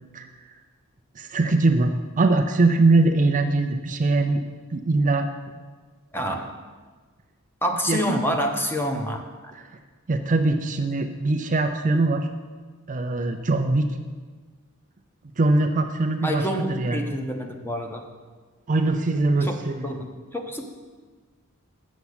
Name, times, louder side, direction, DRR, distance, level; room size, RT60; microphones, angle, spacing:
voice 1, 1.2-4.4 4.7-5.3 7.9-8.2 10.1-12.3 12.9-13.9 15.4-17.0 18.7-19.9, right 2 dB, 35° right, 6 dB, 0.5 m, -22 dB
voice 2, 6.1-6.4 7.6-9.5 16.2-18.0 19.4-20.7, equal, 10° left, 3 dB, 0.9 m, -28 dB
7.2 x 7.0 x 8.1 m, 1.4 s
head